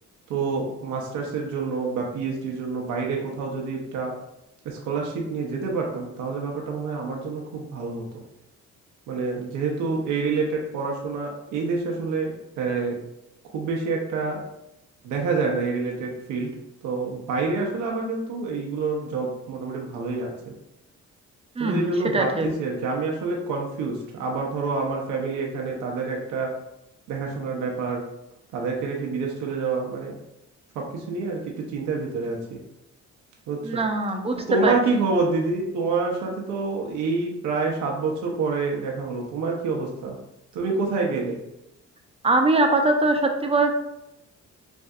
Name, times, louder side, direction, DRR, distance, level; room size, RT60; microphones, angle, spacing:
voice 1, 0.3-4.1 4.6-8.2 9.1-13.0 13.5-14.4 15.0-16.5 16.8-20.5 21.6-26.5 27.1-28.0 28.5-30.2 30.8-32.6 33.5-33.8 34.5-40.2 40.5-41.4, right 4 dB, 85° right, 0 dB, 0.6 m, -27 dB
voice 2, 22.1-22.5 33.6-34.4 34.6-34.7 42.2-43.8, right 2 dB, 20° right, 4 dB, 0.4 m, -21 dB
3.3 x 2.6 x 2.3 m, 0.86 s
cardioid pair, 90°, 30 cm